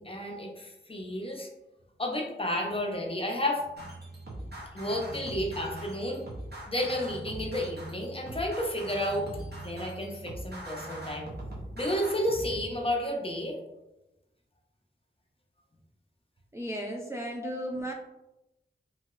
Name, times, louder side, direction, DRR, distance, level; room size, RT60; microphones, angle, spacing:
voice 1, 0.0-1.5 2.0-3.6 4.7-6.2 6.7-9.3 9.6-11.3 11.8-13.6 17.4-17.5, left 1 dB, 30° left, 0 dB, 0.6 m, -31 dB
sound 1, 3.8-12.7, right 1 dB, 55° right, 0.8 m, -41 dB
voice 2, 16.5-17.9, equal, 15° right, 0 dB, 0.3 m, -35 dB
2.8 x 2.8 x 2.4 m, 0.96 s
wide cardioid pair, 55°, 20 cm